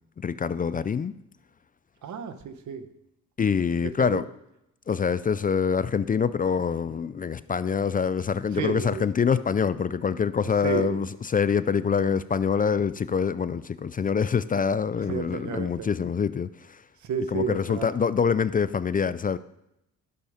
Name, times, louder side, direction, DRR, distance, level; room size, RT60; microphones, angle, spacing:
voice 1, 0.2-1.1 3.4-4.3 4.9-16.8 17.3-19.4, left 6 dB, 30° left, 15 dB, 0.4 m, -25 dB
voice 2, 2.0-2.9 4.0-4.2 8.5-9.0 10.6-11.0 15.1-15.9 17.0-17.9, right 6 dB, 70° right, 10 dB, 1.0 m, -31 dB
12.0 x 6.8 x 5.0 m, 0.84 s
cardioid pair, 85°, 30 cm